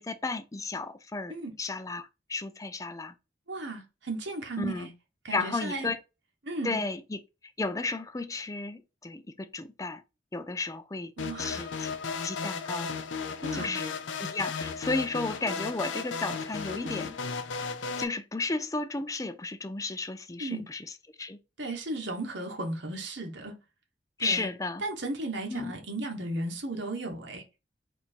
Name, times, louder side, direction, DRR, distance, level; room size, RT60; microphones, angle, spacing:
voice 1, 0.0-3.1 4.6-4.9 5.3-6.0 6.6-7.2 7.6-10.0 10.3-11.1 11.4-11.9 12.2-12.9 13.5-17.2 18.0-20.8 21.2-21.4 24.2-24.8 25.5-25.7, left 3 dB, 20° left, 0.4 m, -33 dB
voice 2, 3.5-4.9 5.2-5.9 6.4-6.8 11.2-11.7 13.4-13.8 16.7-16.9 20.4-20.6 21.6-23.6 24.2-24.5 24.8-27.4, right 2 dB, 80° right, 1.3 m, -35 dB
sound 1, 11.2-18.0, left 5 dB, 85° left, 0.6 m, -35 dB
4.3 x 2.6 x 4.4 m
head